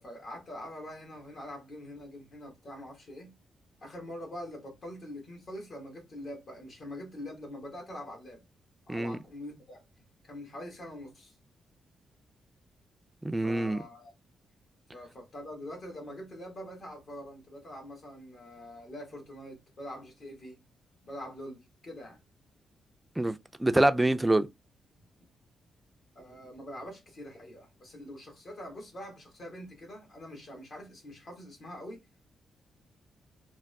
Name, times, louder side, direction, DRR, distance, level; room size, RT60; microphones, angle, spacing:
voice 1, 0.0-3.4 3.8-8.4 8.9-9.8 10.2-11.3 13.4-14.1 14.9-20.6 21.0-22.2 26.1-32.0, left 1 dB, 55° left, 1.6 m, -44 dB
voice 2, 13.2-13.8 23.2-24.5, right 1 dB, 15° right, 0.4 m, -26 dB
3.4 x 2.3 x 2.2 m
supercardioid pair, 60°, 0 cm